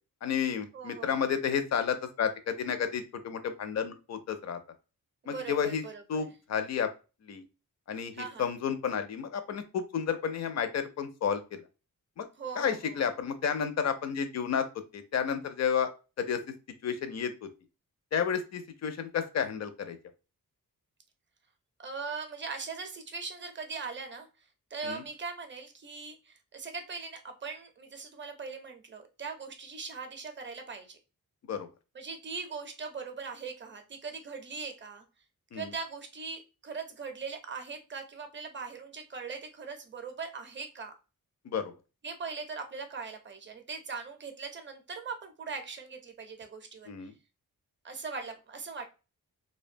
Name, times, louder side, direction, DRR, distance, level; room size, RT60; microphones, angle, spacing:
voice 1, 0.2-4.6 5.3-5.8 6.1-6.9 7.2-7.4 7.9-11.6 12.2-12.3 12.6-14.7 14.9-15.9 16.2-16.4 16.8-17.3 18.1-20.0 24.8-25.0 31.4-31.7 35.5-35.7 41.4-41.7 46.9-47.1, left 7 dB, 50° left, 9 dB, 0.5 m, -31 dB
voice 2, 0.7-1.2 5.2-6.3 8.1-8.5 12.4-13.0 21.8-24.3 24.7-31.0 31.9-35.0 35.5-40.9 42.0-47.1 47.8-48.8, right 5 dB, 35° right, 6 dB, 0.5 m, -40 dB
2.5 x 2.2 x 2.5 m, 0.31 s
wide cardioid pair, 110°, 35 cm